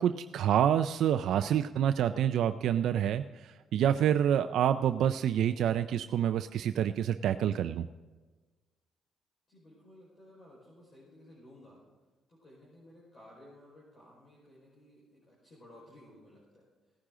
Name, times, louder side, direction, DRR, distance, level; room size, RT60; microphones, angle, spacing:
voice 1, 0.0-7.9, right 10 dB, 75° right, 9 dB, 0.4 m, -27 dB
voice 2, 9.5-11.8 12.3-16.7, left 1 dB, 35° left, -5 dB, 4.9 m, -56 dB
18.5 x 9.7 x 3.8 m, 1.3 s
cardioid pair, 90°, 0 cm